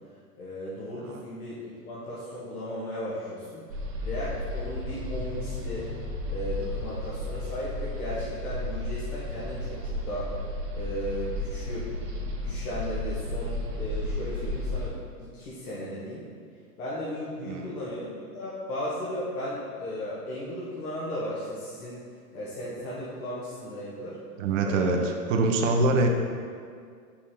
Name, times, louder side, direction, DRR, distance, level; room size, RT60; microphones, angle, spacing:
voice 1, 0.3-3.6 4.0-5.9 6.3-10.3 10.7-11.9 12.4-16.2 16.8-22.0 22.3-24.2 24.6-25.0 25.8-25.9, left 1 dB, 65° left, -8 dB, 1.6 m, -35 dB
sound 1, 3.7-14.9, left 1 dB, 80° right, 1.1 m, -33 dB
voice 2, 24.4-26.1, right 3 dB, 50° right, 3 dB, 0.9 m, -24 dB
5.7 x 4.2 x 5.0 m, 2.1 s
figure-of-eight pair, 100°, 48 cm